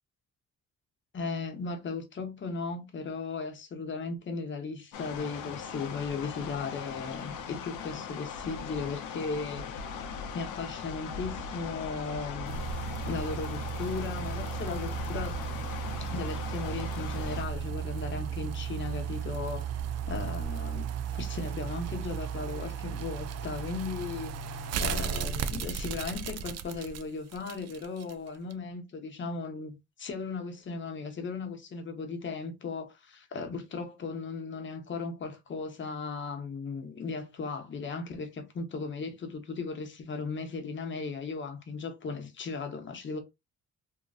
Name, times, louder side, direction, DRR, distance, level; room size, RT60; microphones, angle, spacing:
voice 1, 1.1-9.8 10.3-12.6 13.1-15.4 16.0-19.7 20.1-20.9 21.1-43.2, left 4 dB, 40° left, 0.8 m, -37 dB
sound 1, 4.9-17.4, left 5 dB, 85° left, 0.7 m, -39 dB
sound 2, 12.5-28.1 28.5-28.6, right 7 dB, 55° right, 0.4 m, -35 dB
2.9 x 2.5 x 2.4 m
cardioid pair, 90°, 30 cm